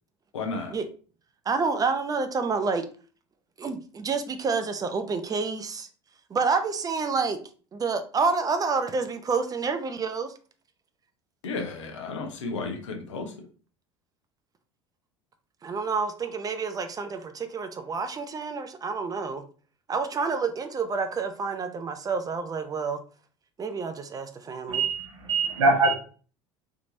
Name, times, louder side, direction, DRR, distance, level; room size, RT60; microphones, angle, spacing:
voice 1, 0.3-0.7 11.4-13.3, left 3 dB, 80° left, 0.8 m, -33 dB
voice 2, 1.5-2.8 3.6-5.9 6.3-7.4 7.7-10.3 15.6-19.4 19.9-23.0 23.6-24.9, right 4 dB, 25° right, 0.6 m, -28 dB
voice 3, 24.7-25.9, right 3 dB, 80° right, 0.8 m, -23 dB
3.4 x 2.9 x 2.6 m
hypercardioid pair, 70°, 15 cm